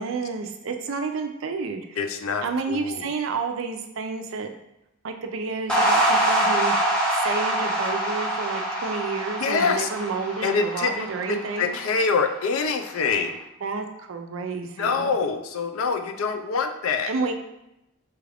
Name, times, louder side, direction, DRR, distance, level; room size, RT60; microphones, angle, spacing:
voice 1, 0.0-2.0 2.4-4.5 5.0-11.8 13.6-15.1 17.1-17.3, right 4 dB, 70° right, 5 dB, 0.4 m, -30 dB
voice 2, 2.0-3.1 9.4-9.9 10.4-13.4 14.8-17.1, left 5 dB, 80° left, 6 dB, 0.4 m, -25 dB
sound 1, 5.7-12.2, right 1 dB, 5° left, 0.6 m, -25 dB
4.6 x 2.4 x 3.3 m, 0.88 s
head